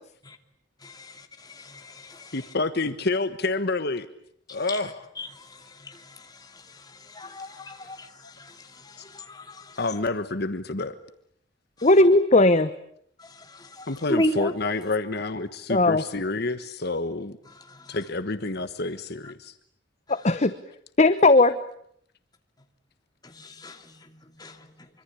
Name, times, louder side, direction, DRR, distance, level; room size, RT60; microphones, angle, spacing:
voice 1, 0.8-2.3 4.5-4.8 5.2-9.8 11.8-11.9 13.2-14.5 17.7-18.0 23.2-24.8, left 1 dB, 20° left, 5 dB, 2.7 m, -35 dB
voice 2, 2.3-4.1 4.5-5.1 9.8-11.0 13.9-17.4 17.9-19.5, left 3 dB, 55° left, 10 dB, 1.3 m, -28 dB
voice 3, 11.8-12.7 15.7-16.0 20.1-20.5 21.0-21.6, left 2 dB, 35° left, 11 dB, 1.0 m, -17 dB
25.0 x 25.0 x 8.6 m, 0.68 s
head